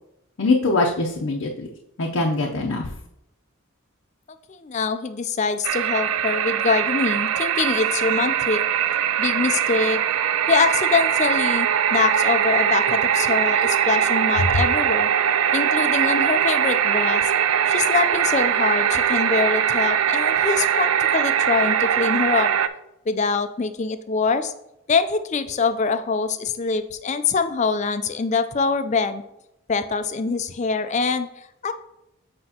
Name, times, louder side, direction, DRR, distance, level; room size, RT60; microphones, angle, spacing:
voice 1, 0.4-1.7 2.0-2.9 14.5-14.6, left 2 dB, 75° left, 0 dB, 0.7 m, -22 dB
voice 2, 4.5-8.6 9.2-10.0 10.5-15.1 15.5-17.3 17.7-22.5 23.1-24.5 24.9-29.2 29.7-31.7, left 4 dB, 35° left, 10 dB, 0.4 m, -24 dB
sound 1, 5.6-22.7, right 9 dB, 80° right, 0.3 m, -21 dB
7.7 x 5.2 x 2.8 m, 0.85 s
head